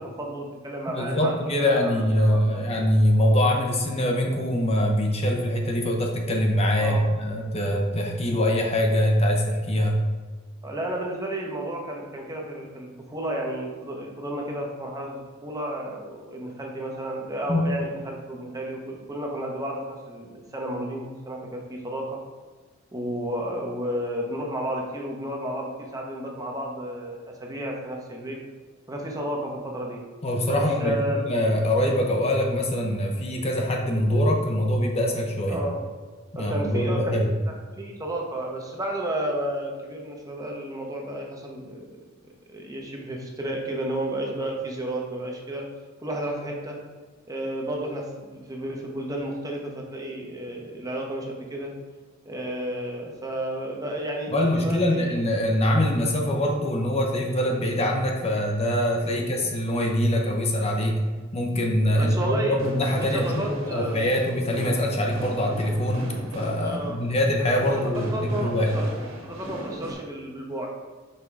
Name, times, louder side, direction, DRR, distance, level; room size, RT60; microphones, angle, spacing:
voice 1, 0.0-1.3 1.6-2.6 6.8-7.1 10.6-22.2 22.9-28.4 28.9-30.0 30.4-31.3 35.5-35.9 36.3-37.1 37.8-42.0 42.5-45.7 46.0-46.8 47.3-51.7 52.3-55.2 59.0-59.3 61.9-62.6 63.1-64.0 66.6-67.0 68.1-68.9 69.2-70.7, right 1 dB, 20° right, 0 dB, 0.8 m, -32 dB
voice 2, 0.9-10.0 17.5-17.6 30.2-35.6 36.3-37.3 54.3-61.0 61.3-68.7, left 1 dB, 30° left, 1 dB, 0.7 m, -23 dB
sound 1, 62.3-69.9, right 1 dB, 80° right, 1.6 m, -38 dB
5.5 x 3.7 x 4.6 m, 1.4 s
head